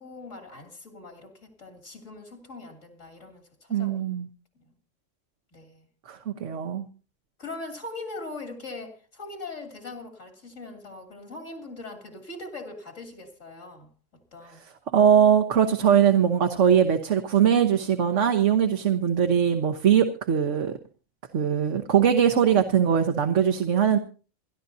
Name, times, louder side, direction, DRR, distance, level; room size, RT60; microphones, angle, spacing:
voice 1, 0.0-4.0 4.6-4.7 5.5-5.9 7.4-13.9 14.3-14.6, left 2 dB, 80° left, 3.3 m, -41 dB
voice 2, 3.7-4.3 6.1-6.9 14.9-20.8 21.3-24.0, right 8 dB, 75° right, 1.4 m, -21 dB
28.0 x 11.5 x 2.7 m
omnidirectional pair, 1.3 m